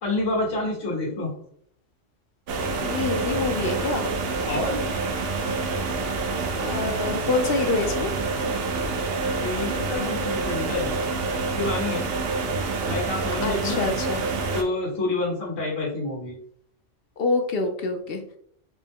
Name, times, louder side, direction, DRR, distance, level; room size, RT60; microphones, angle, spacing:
voice 1, 0.0-1.3 4.5-4.9 9.4-11.0 11.5-12.1 12.8-13.8 14.5-16.4, left 2 dB, 85° left, -5 dB, 1.7 m, -28 dB
sound 1, 2.5-14.6, right 3 dB, 60° right, 0.8 m, -27 dB
voice 2, 2.8-4.1 6.6-8.1 13.4-14.2 17.2-18.2, left 3 dB, 60° left, 5 dB, 0.7 m, -26 dB
4.3 x 2.0 x 3.5 m, 0.64 s
omnidirectional pair, 1.3 m